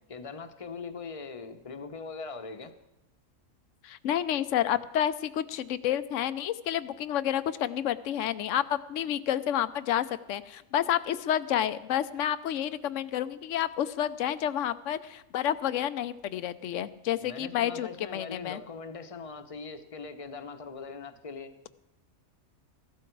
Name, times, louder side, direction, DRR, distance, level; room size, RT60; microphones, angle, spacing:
voice 1, 0.1-2.7 17.2-21.5, left 4 dB, 30° left, 8 dB, 0.8 m, -41 dB
voice 2, 3.8-18.6, left 10 dB, 70° left, 14 dB, 0.9 m, -30 dB
15.5 x 12.5 x 4.6 m, 0.96 s
omnidirectional pair, 1.5 m